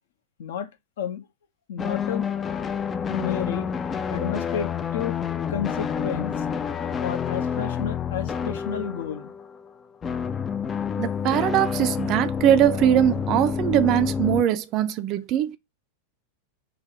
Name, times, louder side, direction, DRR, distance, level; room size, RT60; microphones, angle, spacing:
voice 1, 1.7-2.3 3.1-3.7 4.1-5.2 5.5-6.4 7.0-9.3, left 8 dB, 60° left, 0.8 m, -31 dB
sound 1, 1.8-9.7 10.0-14.4, left 7 dB, 20° left, 0.4 m, -28 dB
voice 2, 11.0-15.6, right 11 dB, 35° right, 0.5 m, -21 dB
3.8 x 2.6 x 4.5 m
figure-of-eight pair, 90°, 0 cm